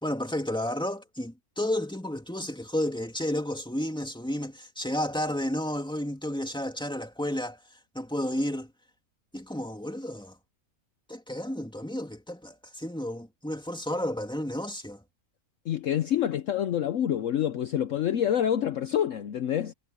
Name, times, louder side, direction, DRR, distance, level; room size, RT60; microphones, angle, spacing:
voice 1, 0.0-7.6 7.9-8.7 9.3-10.4 11.1-15.0, left 1 dB, 5° left, 2.7 m, -32 dB
voice 2, 15.6-19.7, left 10 dB, 65° left, 1.0 m, -27 dB
omnidirectional pair, 1.6 m